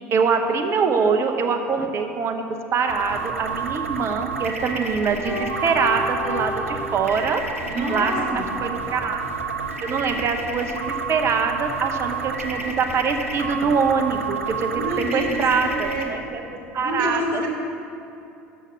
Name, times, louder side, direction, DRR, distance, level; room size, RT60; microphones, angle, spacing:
voice 1, 0.1-2.4 2.7-5.3 5.6-7.4 7.9-9.2 9.8-16.4 16.7-17.4, right 5 dB, 40° right, 5 dB, 0.8 m, -24 dB
sound 1, 2.9-16.0, right 4 dB, 85° right, 0.6 m, -30 dB
Piano, 5.2-7.6, left 3 dB, 60° left, 1.5 m, -32 dB
voice 2, 7.6-8.5 14.7-17.5, right 1 dB, 65° right, 0 dB, 1.4 m, -28 dB
7.2 x 5.7 x 5.8 m, 2.7 s
figure-of-eight pair, 70°, 7 cm